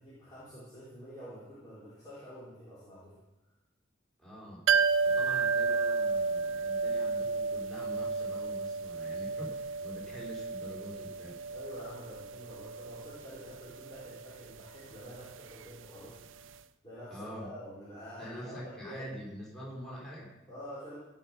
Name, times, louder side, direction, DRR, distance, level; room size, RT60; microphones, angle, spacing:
voice 1, 0.0-3.1 11.5-16.4 16.8-19.1 20.5-20.9, equal, 20° left, -11 dB, 4.4 m, -47 dB
voice 2, 4.2-4.6 5.0-11.4 17.1-17.5 18.2-20.3, equal, ahead, -5 dB, 3.5 m, -45 dB
sound 1, 4.7-16.3 16.5-16.6, right 4 dB, 80° right, 0.5 m, -32 dB
16.0 x 5.6 x 6.8 m, 0.98 s
head